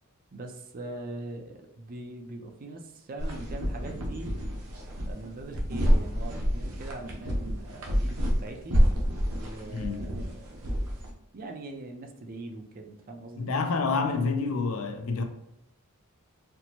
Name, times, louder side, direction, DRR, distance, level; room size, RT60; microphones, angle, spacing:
voice 1, 0.3-4.4 5.1-8.8 9.4-10.7 11.3-13.5, right 2 dB, 40° right, 0.4 m, -42 dB
sound 1, 3.2-11.1, equal, 80° right, 0.7 m, -28 dB
voice 2, 9.7-10.0 13.4-15.2, left 4 dB, 65° left, 0.5 m, -28 dB
4.3 x 2.0 x 2.8 m
head